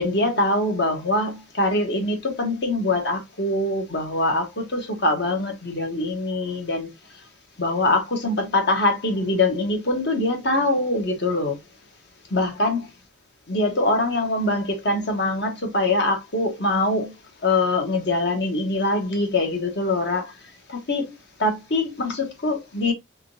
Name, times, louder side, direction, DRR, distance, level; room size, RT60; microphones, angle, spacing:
voice 1, 0.0-6.9 7.6-11.6 12.3-12.9 13.5-17.1 17.4-20.3 20.7-21.1 21.4-22.9, left 2 dB, 60° left, 1.2 m, -23 dB
3.7 x 3.6 x 2.7 m
head